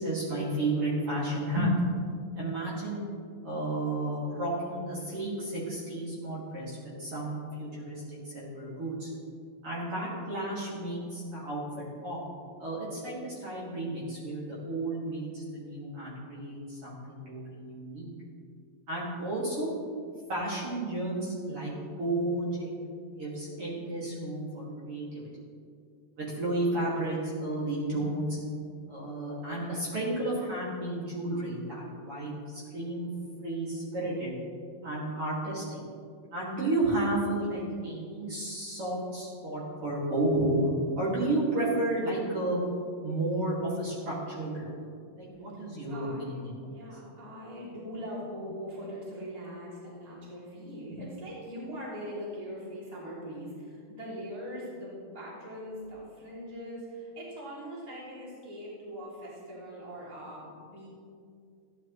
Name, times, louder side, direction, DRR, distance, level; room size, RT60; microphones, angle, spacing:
voice 1, 0.0-1.7 2.4-3.0 3.4-9.1 9.6-11.6 12.0-12.2 12.6-18.1 18.9-19.7 20.3-21.7 22.0-22.7 23.1-25.3 26.2-28.4 28.9-33.1 33.4-34.4 34.8-35.8 36.3-40.6 41.0-42.6 43.0-44.7 45.2-46.5 50.9-51.0, right 1 dB, 45° right, -7 dB, 3.0 m, -32 dB
voice 2, 45.9-60.9, equal, 10° right, -6 dB, 2.4 m, -41 dB
15.0 x 10.5 x 3.2 m, 2.3 s
omnidirectional pair, 3.8 m